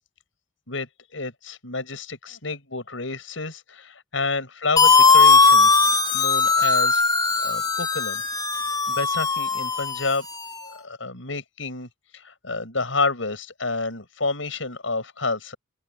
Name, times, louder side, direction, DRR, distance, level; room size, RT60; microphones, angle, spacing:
voice 1, 0.7-5.8 6.1-7.0 7.4-8.2 8.7-10.3 10.6-15.6, left 3 dB, 80° left, 6.0 m, -29 dB
sound 1, 4.8-10.5, left 4 dB, 20° left, 4.3 m, -19 dB
open air
head